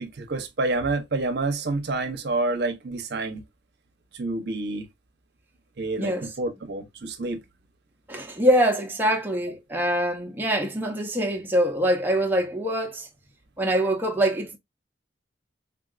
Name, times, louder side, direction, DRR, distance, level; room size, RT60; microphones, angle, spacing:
voice 1, 0.0-3.4 4.1-4.9 5.8-7.4, right 2 dB, 60° right, 0.6 m, -28 dB
voice 2, 6.0-6.3 8.1-13.1 13.6-14.6, right 1 dB, 10° right, 0.5 m, -24 dB
3.5 x 2.3 x 2.4 m
head